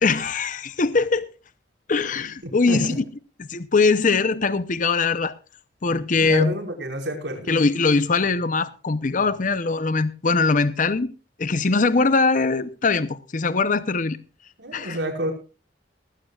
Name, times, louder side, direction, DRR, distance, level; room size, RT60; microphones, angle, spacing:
voice 1, 0.0-1.3 1.9-3.0 3.4-5.3 5.8-6.5 7.5-11.1 11.4-14.2 14.7-15.0, left 4 dB, 50° left, 0.7 m, -21 dB
voice 2, 2.4-3.0 6.2-7.5 14.6-15.3, right 1 dB, 80° right, 5.2 m, -29 dB
19.0 x 15.5 x 2.4 m
head